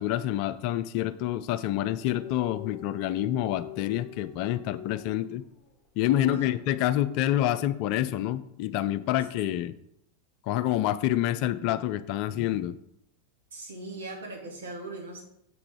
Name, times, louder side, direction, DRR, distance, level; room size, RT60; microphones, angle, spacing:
voice 1, 0.0-5.4 6.0-9.7 10.5-12.8, left 13 dB, 45° left, 15 dB, 0.4 m, -27 dB
sound 1, 1.8-5.9, left 12 dB, 15° left, 2.0 m, -44 dB
voice 2, 6.1-6.5 13.5-15.2, right 2 dB, 65° right, 0 dB, 2.6 m, -40 dB
7.3 x 6.0 x 4.7 m, 0.74 s
figure-of-eight pair, 90°, 0 cm